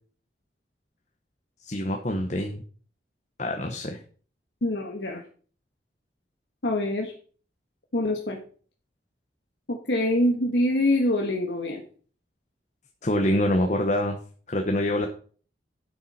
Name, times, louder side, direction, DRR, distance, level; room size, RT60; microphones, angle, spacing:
voice 1, 1.6-2.6 3.4-4.0 13.0-14.2 14.5-15.1, left 1 dB, 40° left, 4 dB, 1.0 m, -25 dB
voice 2, 4.6-5.2 6.6-7.1 7.9-8.4 9.7-11.8, left 1 dB, 90° left, 0 dB, 1.4 m, -25 dB
12.0 x 7.0 x 4.2 m, 0.43 s
head